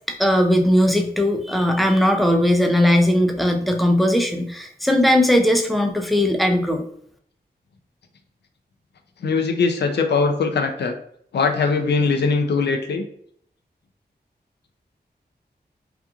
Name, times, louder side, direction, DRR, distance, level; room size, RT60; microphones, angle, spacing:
voice 1, 0.2-6.8, left 1 dB, ahead, 4 dB, 0.3 m, -18 dB
voice 2, 9.2-11.0 11.3-13.1, left 4 dB, 75° left, 5 dB, 0.4 m, -21 dB
2.9 x 2.3 x 2.3 m, 0.65 s
wide cardioid pair, 110°, 17 cm